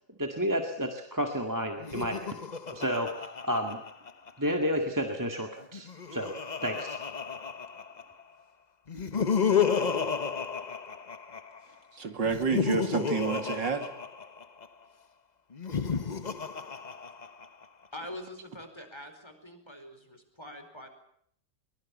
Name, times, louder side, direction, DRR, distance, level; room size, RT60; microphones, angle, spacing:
voice 1, 0.2-2.4 2.7-3.8 4.4-6.4 6.6-7.0, equal, 10° right, 4 dB, 1.9 m, -31 dB
Laughter, 1.8-4.5 5.6-8.2 8.9-11.6 12.2-14.7 15.5-17.6, left 6 dB, 30° left, 0.8 m, -32 dB
voice 2, 11.9-13.9, right 5 dB, 75° right, 7 dB, 3.0 m, -29 dB
voice 3, 17.9-20.9, left 1 dB, 15° left, 6 dB, 4.6 m, -44 dB
23.5 x 22.0 x 7.2 m, 0.66 s
omnidirectional pair, 2.0 m